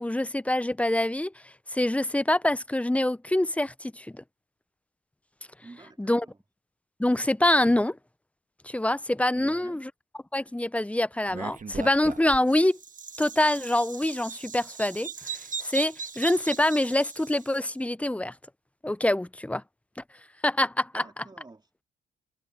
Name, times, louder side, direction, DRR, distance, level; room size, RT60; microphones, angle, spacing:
voice 1, 0.0-4.2 6.0-6.3 7.0-8.0 8.6-9.9 10.3-12.8 13.2-18.3 18.8-19.6 20.4-21.0, left 1 dB, 5° left, 0.7 m, -25 dB
voice 2, 5.6-6.4 9.3-9.8 20.9-21.8, right 3 dB, 20° right, 3.5 m, -48 dB
Bird vocalization bird call bird song, 11.3-17.6, right 5 dB, 40° right, 1.6 m, -38 dB
cardioid pair, 75°, 21 cm